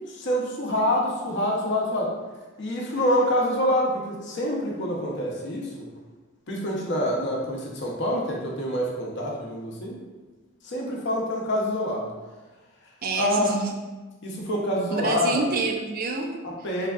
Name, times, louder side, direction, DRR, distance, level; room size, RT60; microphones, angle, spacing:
voice 1, 0.1-2.1 2.6-5.9 6.5-10.0 10.6-12.1 13.2-13.5 14.2-15.4 16.4-16.9, left 1 dB, 55° left, -2 dB, 0.7 m, -26 dB
voice 2, 13.0-13.7 14.9-16.4, right 4 dB, 45° right, 3 dB, 0.3 m, -27 dB
3.5 x 3.3 x 2.3 m, 1.2 s
head